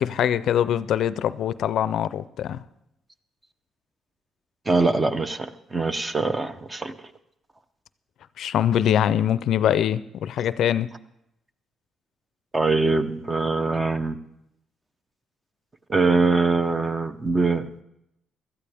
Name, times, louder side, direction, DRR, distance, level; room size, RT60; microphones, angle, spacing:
voice 1, 0.0-2.6 8.4-10.9, left 10 dB, 75° left, 16 dB, 0.4 m, -23 dB
voice 2, 4.7-7.0 12.5-14.2 15.9-17.7, right 3 dB, 25° right, 11 dB, 0.8 m, -23 dB
16.5 x 13.0 x 3.5 m, 0.82 s
cardioid pair, 90°, 0 cm